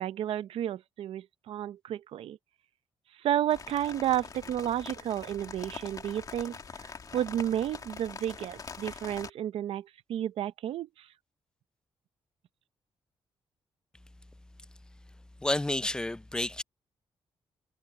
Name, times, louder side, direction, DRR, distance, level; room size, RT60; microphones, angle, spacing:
voice 1, 0.0-2.4 3.2-11.1, right 11 dB, 80° right, 0.7 m, -32 dB
sound 1, 3.5-9.3, left 5 dB, 40° left, 2.2 m, -44 dB
voice 2, 15.4-16.6, left 1 dB, 10° left, 0.5 m, -30 dB
cardioid pair, 105°, 9 cm